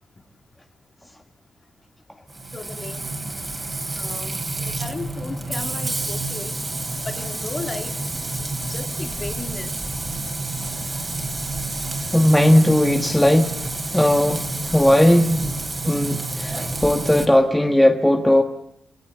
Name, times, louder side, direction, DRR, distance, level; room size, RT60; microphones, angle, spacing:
Frying (food), 2.3-17.3, right 2 dB, 25° right, 3.6 m, -29 dB
voice 1, 2.5-3.1 4.0-6.5 7.0-8.0 8.7-9.7, left 3 dB, 30° left, 5 dB, 3.0 m, -35 dB
voice 2, 12.1-13.6 13.9-15.6 15.8-18.4, left 1 dB, 5° left, 4 dB, 1.4 m, -17 dB
28.0 x 18.0 x 9.4 m, 0.77 s
wide cardioid pair, 135°, 0 cm